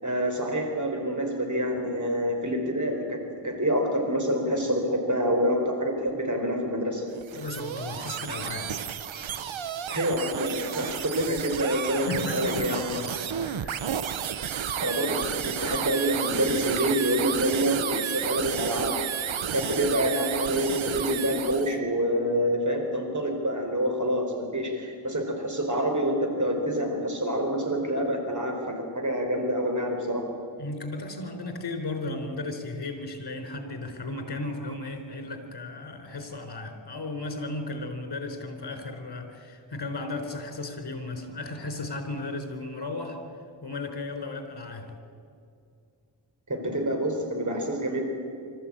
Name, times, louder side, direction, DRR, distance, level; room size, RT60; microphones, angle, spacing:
voice 1, 0.0-7.1 9.9-12.8 14.8-19.0 19.5-30.3 46.5-48.0, equal, 40° right, 3 dB, 4.6 m, -27 dB
sound 1, 7.1-21.8, right 8 dB, 90° right, 0.8 m, -32 dB
voice 2, 7.4-8.9 11.3-11.5 12.1-13.8 30.6-43.2 43.6-44.9, left 2 dB, 55° left, 5 dB, 3.9 m, -35 dB
25.0 x 13.5 x 8.7 m, 2.4 s
cardioid pair, 50°, 46 cm